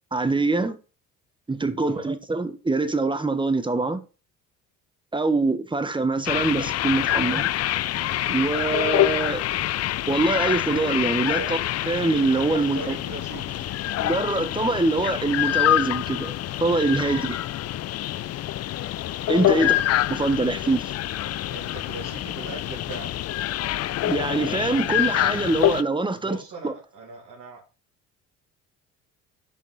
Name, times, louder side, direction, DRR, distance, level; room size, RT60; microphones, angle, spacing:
voice 1, 0.1-0.8 1.5-4.0 5.1-7.5 8.3-9.4 10.1-11.6 11.9-13.0 14.0-17.4 19.3-19.7 20.1-20.9 24.0-26.4 26.6-26.7, right 3 dB, 15° right, 1.1 m, -24 dB
voice 2, 1.8-2.1 7.1-7.4 11.4-11.6 12.6-13.6 19.5-19.8 20.1-20.3 21.5-23.1 26.2-27.6, right 3 dB, 50° right, 3.0 m, -39 dB
sound 1, 6.3-25.8, left 14 dB, 45° left, 0.5 m, -26 dB
6.6 x 5.2 x 4.0 m
supercardioid pair, 70°, 37 cm